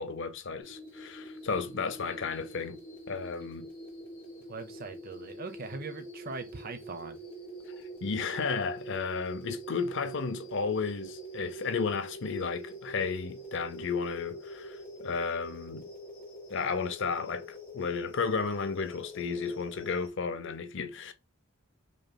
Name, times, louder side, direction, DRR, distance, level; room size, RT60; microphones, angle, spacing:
voice 1, 0.0-2.8 3.1-3.7 7.7-7.8 8.0-15.9 16.5-21.1, left 5 dB, 60° left, 0.6 m, -33 dB
sound 1, 0.6-20.1, right 1 dB, 25° left, 2.4 m, -45 dB
voice 2, 4.5-7.2, right 3 dB, 45° right, 0.7 m, -41 dB
5.3 x 3.0 x 2.2 m
head